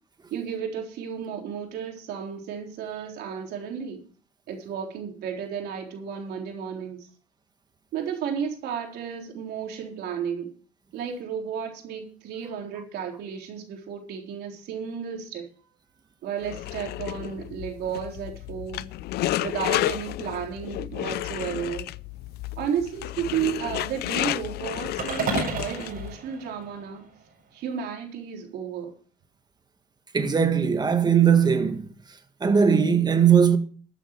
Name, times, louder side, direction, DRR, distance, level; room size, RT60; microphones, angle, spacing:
voice 1, 0.3-4.1 4.5-7.0 7.9-10.5 10.9-15.4 16.2-18.9 19.4-21.9 22.6-27.0 27.5-28.9, right 7 dB, 75° right, 3.9 m, -33 dB
sound 1, 16.4-26.1, left 15 dB, 70° left, 0.5 m, -31 dB
sound 2, 25.0-27.3, right 5 dB, 60° right, 4.4 m, -32 dB
voice 2, 30.1-31.9 32.4-33.6, right 7 dB, 25° right, 1.8 m, -19 dB
13.0 x 8.9 x 4.8 m
cardioid pair, 110°, 17 cm